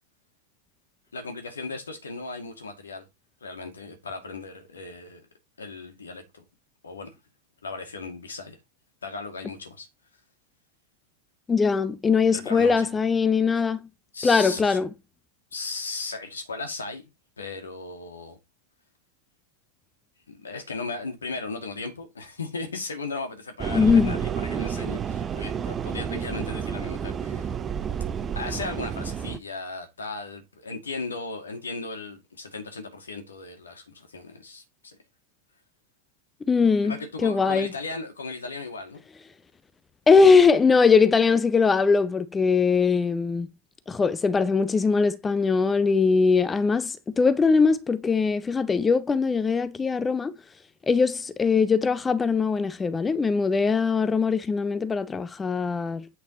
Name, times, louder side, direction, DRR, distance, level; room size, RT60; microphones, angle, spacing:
voice 1, 1.1-3.1 3.4-5.3 5.6-6.4 6.8-7.1 7.6-8.6 9.0-9.9 12.3-13.0 14.1-14.8 15.5-17.1 17.4-18.4 20.3-27.5 28.3-35.0 36.8-39.0, left 3 dB, 70° left, 2.3 m, -36 dB
voice 2, 11.5-13.8 14.2-14.9 23.7-24.2 36.5-37.7 40.1-43.5 43.9-50.3 50.9-56.1, left 5 dB, 15° left, 0.6 m, -21 dB
sound 1, 23.6-29.4, right 8 dB, 25° right, 0.7 m, -30 dB
8.4 x 5.7 x 4.0 m
figure-of-eight pair, 90°, 0 cm